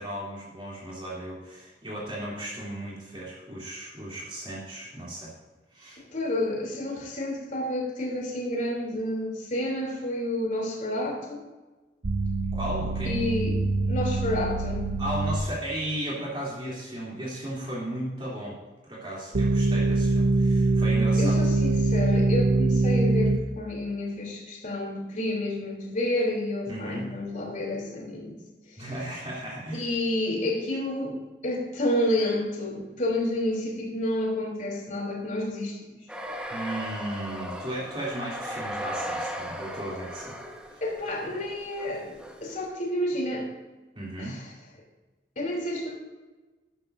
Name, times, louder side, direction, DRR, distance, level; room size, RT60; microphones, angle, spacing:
voice 1, 0.0-5.3 5.7-6.0 12.5-13.3 15.0-18.6 18.8-21.4 26.7-27.1 28.8-29.9 36.5-40.3 40.7-40.8 43.9-44.3, right 1 dB, 30° right, -6 dB, 3.1 m, -35 dB
voice 2, 6.1-11.4 13.0-13.6 13.9-14.9 21.2-28.3 28.7-28.9 29.7-35.8 40.8-43.5 44.2-44.5 45.3-45.9, left 1 dB, 50° left, -2 dB, 3.3 m, -30 dB
sound 1, 12.0-15.4 19.3-23.4, right 2 dB, 60° right, 0.7 m, -24 dB
sound 2, 36.1-42.7, equal, 5° right, 1.3 m, -37 dB
13.0 x 12.0 x 2.7 m, 1.2 s
head